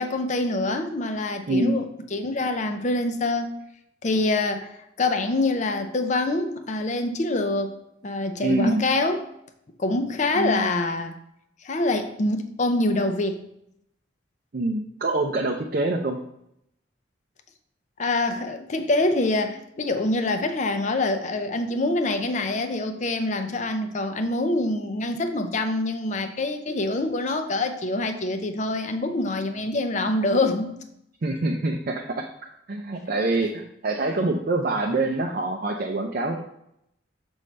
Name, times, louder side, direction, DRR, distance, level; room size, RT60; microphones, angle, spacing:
voice 1, 0.0-3.5 4.0-7.8 8.0-9.2 9.8-11.2 11.6-13.4 18.0-30.7, left 2 dB, 40° left, 0.6 m, -25 dB
voice 2, 1.5-1.8 8.4-8.9 10.3-10.7 14.5-16.2 31.2-32.3 32.7-36.4, right 2 dB, 50° right, 0.5 m, -25 dB
6.3 x 5.3 x 3.3 m
head